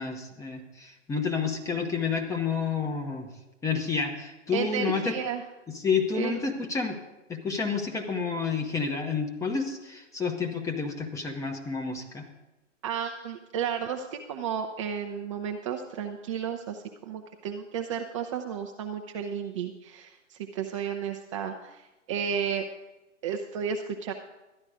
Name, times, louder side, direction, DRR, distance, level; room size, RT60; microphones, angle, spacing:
voice 1, 0.0-3.3 3.6-5.2 5.7-7.0 7.3-12.3, left 5 dB, 10° left, 3 dB, 0.9 m, -30 dB
voice 2, 4.5-5.4 6.1-6.3 12.8-22.6 23.2-24.1, right 7 dB, 25° right, 3 dB, 0.5 m, -33 dB
13.0 x 10.5 x 4.9 m, 1.0 s
hypercardioid pair, 130°, 38 cm